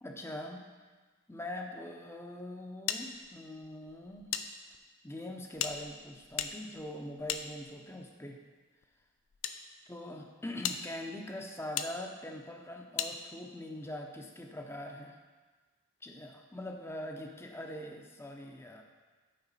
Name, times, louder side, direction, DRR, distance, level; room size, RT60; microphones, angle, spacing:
voice 1, 0.0-0.6 1.3-4.3 5.0-8.4 9.9-15.2 16.0-18.8, left 1 dB, 15° left, 2 dB, 0.6 m, -42 dB
sound 1, 2.9-4.5 4.7-4.8 5.5-8.0 8.8-9.6 10.1-10.2 10.6-10.8 11.8-11.9 13.0-13.1, left 9 dB, 80° left, 0.4 m, -37 dB
9.8 x 4.8 x 4.1 m, 1.4 s
head